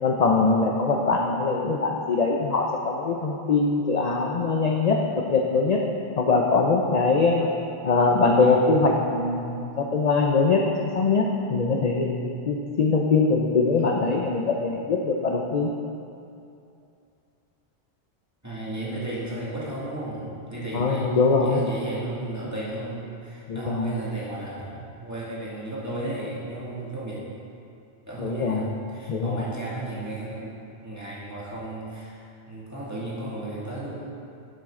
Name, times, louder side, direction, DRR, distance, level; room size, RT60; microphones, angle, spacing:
voice 1, 0.0-5.0 5.3-5.8 6.2-7.5 7.8-15.7 20.7-21.6 23.5-23.9 28.2-28.7 29.1-29.4, left 4 dB, 45° left, 0 dB, 0.6 m, -22 dB
voice 2, 18.4-27.2 28.1-30.5 30.8-32.2 32.5-33.9, right 2 dB, 15° right, -8 dB, 2.1 m, -34 dB
11.0 x 7.5 x 3.7 m, 2.6 s
omnidirectional pair, 1.1 m